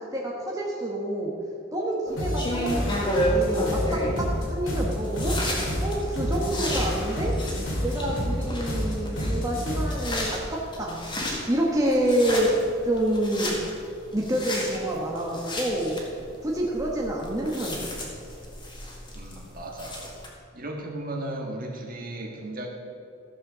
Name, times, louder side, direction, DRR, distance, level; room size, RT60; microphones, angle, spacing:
voice 1, 0.1-1.3 1.7-5.4 5.8-7.3 7.8-11.0 11.5-12.5 12.8-13.5 14.1-16.0 16.4-17.9, right 1 dB, 15° right, -3 dB, 1.3 m, -28 dB
sound 1, 2.1-20.3, equal, 25° left, 1.8 m, -32 dB
sound 2, 2.2-10.1, equal, 65° left, 2.8 m, -29 dB
voice 2, 19.1-20.0 20.5-22.7, right 1 dB, 45° right, 0 dB, 1.7 m, -35 dB
14.0 x 6.7 x 6.8 m, 2.4 s
head